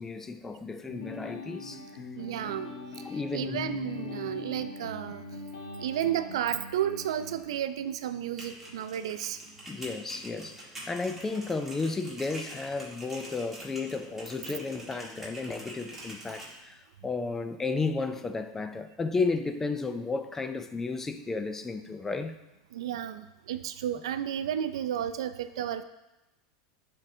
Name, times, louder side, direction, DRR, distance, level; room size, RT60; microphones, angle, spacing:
voice 1, 0.0-2.1 3.0-3.6 9.7-22.4, left 3 dB, 15° left, 0.4 m, -33 dB
sound 1, 0.9-7.4, left 4 dB, 85° left, 1.4 m, -41 dB
voice 2, 2.1-2.8 3.3-5.2 5.8-9.4 22.7-25.8, right 10 dB, 85° right, 0.4 m, -32 dB
sound 2, 8.2-16.5, right 1 dB, 10° right, 1.6 m, -45 dB
10.5 x 3.7 x 2.7 m
supercardioid pair, 130°, 3 cm